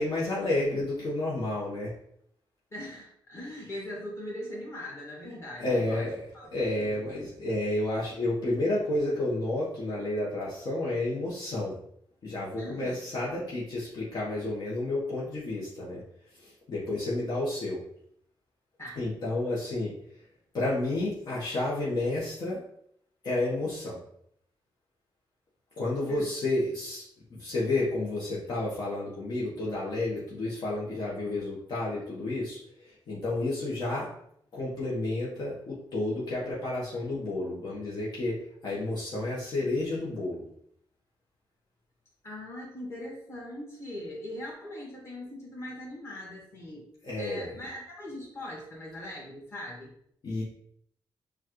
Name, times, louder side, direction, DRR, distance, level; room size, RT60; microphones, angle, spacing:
voice 1, 0.0-1.9 5.6-6.2 6.5-11.8 12.2-16.0 16.3-17.8 19.0-19.9 20.5-22.6 23.2-24.0 25.8-34.1 34.5-40.4 47.0-47.6 50.2-50.4, left 2 dB, 55° left, -6 dB, 1.1 m, -31 dB
voice 2, 2.7-7.0 12.6-13.0 18.8-19.0 26.1-26.3 42.2-46.9 47.2-49.9, left 1 dB, 30° left, -4 dB, 1.8 m, -40 dB
7.1 x 2.4 x 3.0 m, 0.69 s
wide cardioid pair, 150°, 9 cm